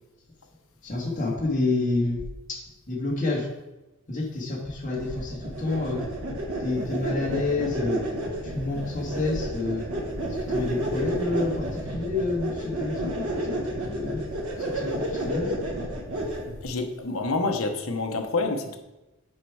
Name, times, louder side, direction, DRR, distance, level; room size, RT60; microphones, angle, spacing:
voice 1, 0.8-2.2 2.9-3.5 4.1-6.0 6.6-8.0 8.4-9.8 10.5-13.5 13.9-14.2 14.7-15.5, left 3 dB, 35° left, -5 dB, 2.0 m, -28 dB
sound 1, 5.0-16.6, right 1 dB, 80° right, 1.5 m, -31 dB
voice 2, 16.6-18.8, left 3 dB, 70° left, 4 dB, 0.9 m, -27 dB
7.5 x 5.3 x 4.8 m, 1.0 s
head